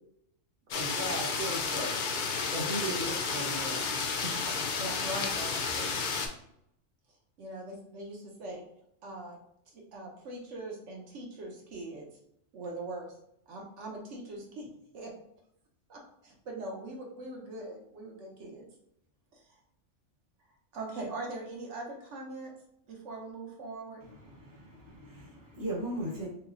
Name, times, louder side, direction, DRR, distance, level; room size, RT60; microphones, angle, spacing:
sound 1, 0.7-6.3, left 5 dB, 65° left, 0.5 m, -32 dB
voice 1, 0.7-1.9 2.5-3.9 4.2-4.3, right 1 dB, 50° right, -3 dB, 0.6 m, -37 dB
voice 2, 4.4-5.9 7.4-8.6 9.0-9.4 9.7-12.1 12.5-13.1 13.5-14.6 14.9-15.1 15.9-18.7 19.3-19.6 20.7-22.5 22.9-24.0, right 2 dB, 70° right, 0 dB, 1.0 m, -41 dB
voice 3, 24.0-26.3, right 1 dB, 20° right, -3 dB, 0.8 m, -38 dB
3.4 x 3.0 x 2.4 m, 0.74 s
omnidirectional pair, 1.3 m